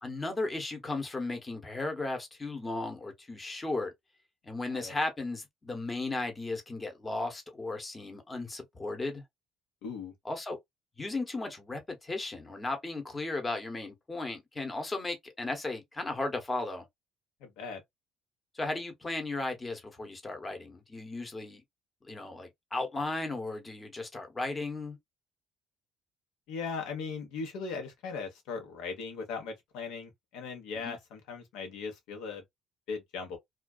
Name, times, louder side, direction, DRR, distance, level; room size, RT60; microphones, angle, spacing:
voice 1, 0.0-3.9 4.5-9.2 10.2-10.6 11.0-16.9 18.5-21.6 22.0-25.0 30.8-31.0, left 2 dB, 20° left, 0.9 m, -35 dB
voice 2, 9.8-10.1 17.4-17.8 26.5-32.4 32.9-33.4, left 5 dB, 85° left, 0.9 m, -38 dB
2.4 x 2.2 x 2.2 m
cardioid pair, 100°, 0 cm